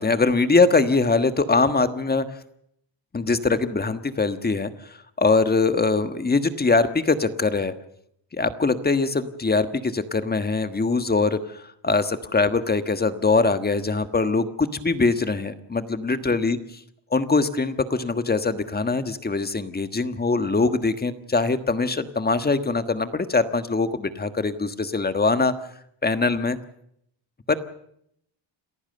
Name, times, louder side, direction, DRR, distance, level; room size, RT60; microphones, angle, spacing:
voice 1, 0.0-2.3 3.1-7.7 8.3-16.6 17.1-25.5 26.0-26.6 27.5-27.6, left 3 dB, 20° left, 10 dB, 1.4 m, -22 dB
27.5 x 15.0 x 6.8 m, 0.72 s
cardioid pair, 120°, 46 cm